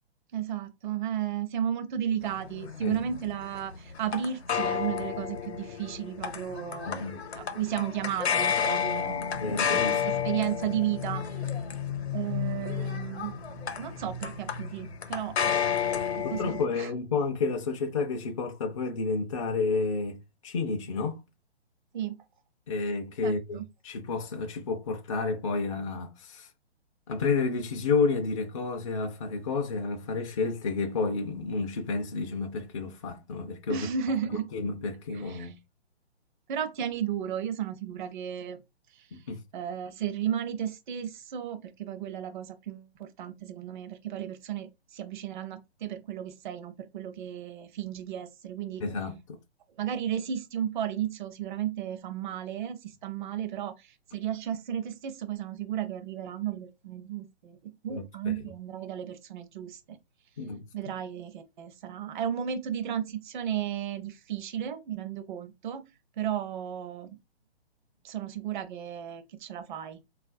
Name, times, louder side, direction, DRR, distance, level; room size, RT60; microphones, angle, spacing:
voice 1, 0.3-9.8 10.2-11.5 12.1-13.3 13.8-16.9 21.9-22.2 23.2-23.6 33.7-34.5 35.1-35.5 36.5-38.6 38.9-39.2 39.5-48.8 49.8-60.0 60.7-65.8 66.2-67.2 68.0-70.0, right 9 dB, 45° right, 0.6 m, -34 dB
sound 1, 2.2-16.7, left 7 dB, 75° left, 0.8 m, -31 dB
voice 2, 6.9-7.2 9.3-10.0 16.2-21.2 22.7-26.5 27.1-33.9 34.5-35.6 39.1-39.4 48.8-49.4 57.9-58.4 60.4-60.6, left 4 dB, 30° left, 0.4 m, -30 dB
3.6 x 2.4 x 2.5 m
hypercardioid pair, 140°, 33 cm